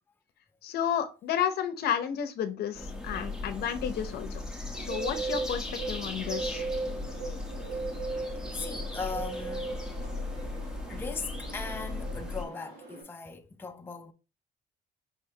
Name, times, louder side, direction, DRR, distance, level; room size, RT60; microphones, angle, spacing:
voice 1, 0.6-4.4 4.8-6.7, left 9 dB, 70° left, 0.7 m, -32 dB
sound 1, 2.7-12.4, left 2 dB, 5° right, 1.1 m, -37 dB
Bird, 4.7-13.0, right 3 dB, 70° right, 2.6 m, -38 dB
voice 2, 8.5-9.8 10.9-14.1, left 4 dB, 15° left, 0.6 m, -39 dB
5.3 x 3.2 x 2.8 m
cardioid pair, 110°, 17 cm